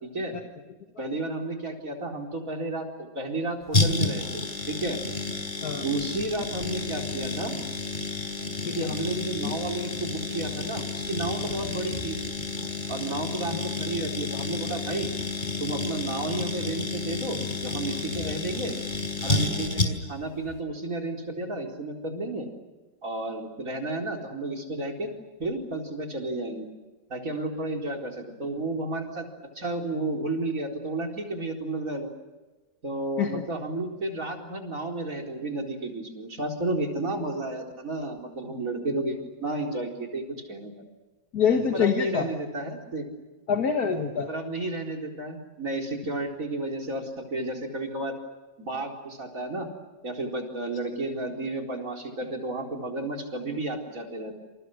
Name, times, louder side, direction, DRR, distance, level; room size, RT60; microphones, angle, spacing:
voice 1, 0.0-0.3 1.0-5.0 5.7-7.6 8.7-12.2 12.9-15.1 15.6-18.8 19.2-22.5 23.0-25.1 25.4-26.7 27.1-29.3 29.5-32.1 32.8-40.8 41.7-43.1 44.3-48.1 48.6-49.7 50.0-54.4, right 2 dB, 50° right, 1 dB, 4.7 m, -32 dB
sound 1, 3.7-20.2 20.5-20.6, left 3 dB, 25° left, 4.5 m, -30 dB
voice 2, 41.3-42.3 43.5-44.3, left 6 dB, 60° left, 4 dB, 2.0 m, -26 dB
28.5 x 28.0 x 6.6 m, 1.2 s
omnidirectional pair, 1.9 m